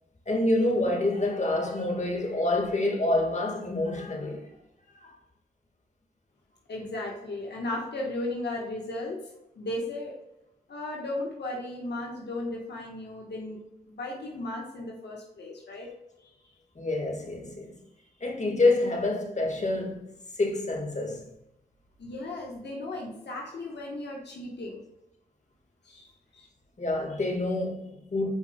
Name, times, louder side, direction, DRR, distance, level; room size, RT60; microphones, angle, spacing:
voice 1, 0.3-4.5 5.0-5.1 16.8-17.8 18.2-20.0 20.4-21.2 26.8-28.3, left 2 dB, 45° left, 1.8 m, -27 dB
voice 2, 6.7-10.2 10.7-13.6 13.8-15.9 16.2-16.3 22.0-24.8 25.8-26.5, left 2 dB, 80° left, 1.4 m, -36 dB
9.5 x 5.1 x 2.3 m
cardioid pair, 40°, 17 cm